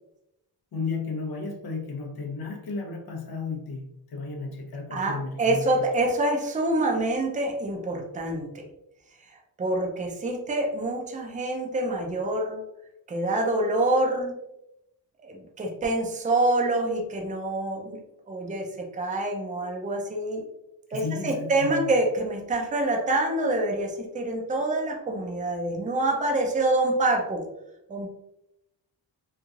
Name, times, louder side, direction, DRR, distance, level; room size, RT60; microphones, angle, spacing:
voice 1, 0.7-5.8 20.9-21.9, left 4 dB, 55° left, 2 dB, 0.8 m, -33 dB
voice 2, 4.9-8.7 9.6-12.6 13.1-14.3 15.2-18.0 18.3-20.4 20.9-27.4 27.9-28.1, right 2 dB, 20° right, 1 dB, 0.5 m, -26 dB
3.1 x 2.7 x 2.4 m, 0.86 s
cardioid pair, 95°, 44 cm